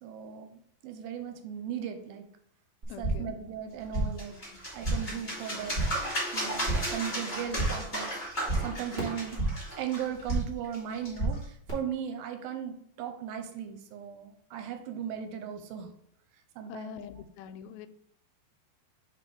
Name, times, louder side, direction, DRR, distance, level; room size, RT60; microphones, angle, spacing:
voice 1, 0.0-2.3 3.0-4.4 4.7-5.8 6.3-9.4 9.8-15.9 16.6-17.1, right 8 dB, 85° right, 6 dB, 2.5 m, -37 dB
sound 1, 2.8-3.4 3.6-4.3 4.6-5.2 5.5-6.1 6.4-7.0 7.3-7.9 8.2-9.7 10.0-10.6 10.9-11.7, right 2 dB, 35° right, 1.2 m, -32 dB
voice 2, 2.9-3.3 16.7-17.9, left 10 dB, 90° left, 11 dB, 2.4 m, -44 dB
sound 2, 3.9-11.4, equal, 25° left, 0.9 m, -36 dB
5.1 x 4.3 x 5.0 m, 0.69 s
omnidirectional pair, 4.2 m